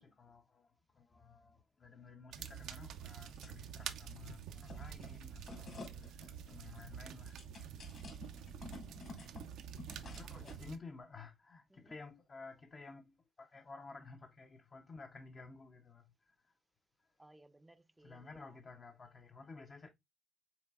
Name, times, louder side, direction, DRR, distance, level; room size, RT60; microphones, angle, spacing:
voice 1, 0.0-7.8 9.2-9.4 10.1-16.5 17.0-17.1 18.0-19.9, left 4 dB, 40° left, 0.5 m, -54 dB
sound 1, 2.3-10.8, right 8 dB, 85° right, 0.5 m, -48 dB
sound 2, 3.2-3.9 4.2-10.7, left 3 dB, 60° left, 2.2 m, -53 dB
voice 2, 8.5-9.3 10.4-10.5 11.7-12.0 17.2-18.6, right 1 dB, 10° right, 0.5 m, -62 dB
5.6 x 3.9 x 2.3 m
cardioid pair, 90°, 0 cm